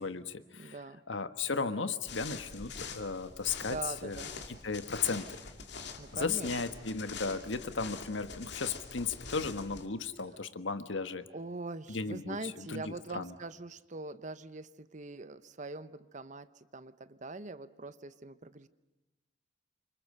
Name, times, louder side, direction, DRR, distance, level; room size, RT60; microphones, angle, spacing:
voice 1, 0.0-0.7 1.1-3.8 4.0-4.2 4.6-5.3 6.1-11.2 11.9-12.4 12.7-13.3, left 4 dB, 85° left, 10 dB, 1.4 m, -35 dB
voice 2, 0.5-1.0 3.6-4.3 6.0-6.9 11.3-18.7, right 3 dB, 40° right, 14 dB, 0.9 m, -43 dB
sound 1, 2.1-9.9, left 5 dB, 65° left, 2.5 m, -45 dB
28.5 x 25.5 x 6.7 m, 1.0 s
head